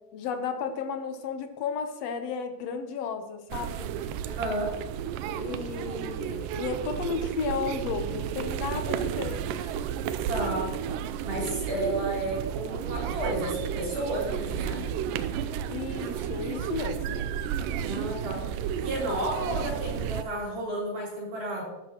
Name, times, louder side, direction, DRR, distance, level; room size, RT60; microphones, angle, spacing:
voice 1, 0.1-4.0 5.4-9.7 15.7-17.3, left 5 dB, 75° left, 7 dB, 1.5 m, -33 dB
sound 1, 3.5-20.2, right 9 dB, 80° right, 2.1 m, -32 dB
voice 2, 4.2-4.7 10.3-10.7 11.2-14.8 17.8-21.6, right 1 dB, 60° right, -5 dB, 6.6 m, -32 dB
14.0 x 12.0 x 3.0 m, 1.0 s
omnidirectional pair, 4.1 m